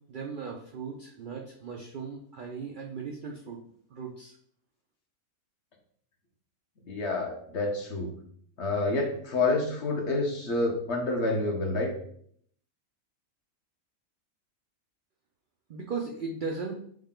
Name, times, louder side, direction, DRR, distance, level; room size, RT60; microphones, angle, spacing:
voice 1, 0.1-3.6 3.9-4.4 15.7-16.8, right 5 dB, 80° right, 1 dB, 0.4 m, -37 dB
voice 2, 6.9-8.1 8.6-11.9, left 2 dB, 55° left, 2 dB, 1.0 m, -28 dB
6.4 x 2.2 x 3.6 m, 0.64 s
omnidirectional pair, 1.5 m